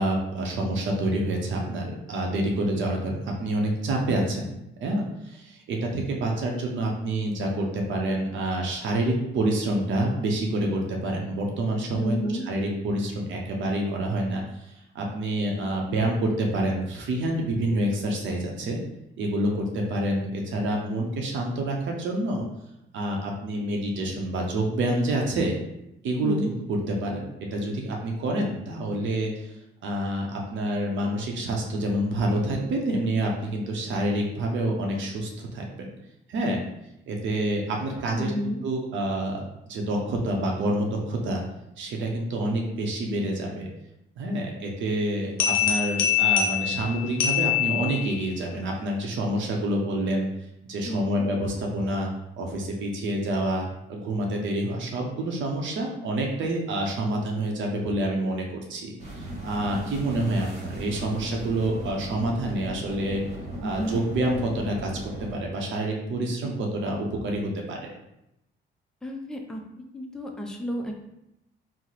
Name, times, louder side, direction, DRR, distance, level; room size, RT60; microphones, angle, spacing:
voice 1, 0.0-4.5 4.8-12.2 12.4-18.8 19.2-22.4 22.9-25.5 26.0-29.5 29.8-35.9 36.3-36.6 37.1-41.4 41.8-43.7 44.2-50.3 50.6-52.1 52.4-58.4 58.7-63.2 63.6-64.9 65.2-67.9, right 1 dB, 70° right, 0 dB, 0.6 m, -27 dB
voice 2, 11.9-12.5 26.2-26.5 38.1-38.6 50.8-51.2 63.6-64.0 69.0-69.6 69.9-71.1, equal, 5° left, 1 dB, 0.4 m, -31 dB
sound 1, 45.4-48.3, left 9 dB, 80° left, 0.6 m, -24 dB
sound 2, 59.0-65.4, right 1 dB, 35° right, 1.1 m, -37 dB
2.9 x 2.0 x 3.9 m, 0.85 s
cardioid pair, 90°, 20 cm